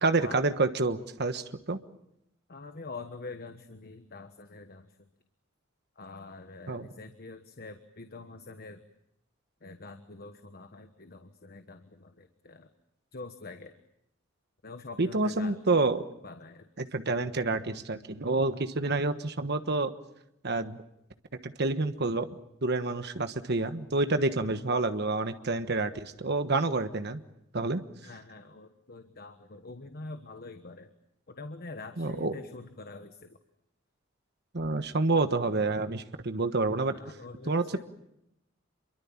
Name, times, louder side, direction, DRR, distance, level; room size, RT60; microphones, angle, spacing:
voice 1, 0.0-1.8 6.7-6.9 15.0-16.0 16.8-19.9 20.4-20.8 21.4-22.3 22.6-27.2 27.5-27.8 32.0-32.4 34.5-37.0 37.5-37.8, right 3 dB, 55° right, 9 dB, 1.3 m, -28 dB
voice 2, 2.5-4.9 6.0-8.8 9.6-12.7 13.1-13.7 14.6-15.6 16.2-16.7 28.0-30.9 31.3-33.4 36.8-37.8, left 3 dB, 50° left, 8 dB, 1.3 m, -45 dB
27.0 x 23.5 x 7.3 m, 0.80 s
head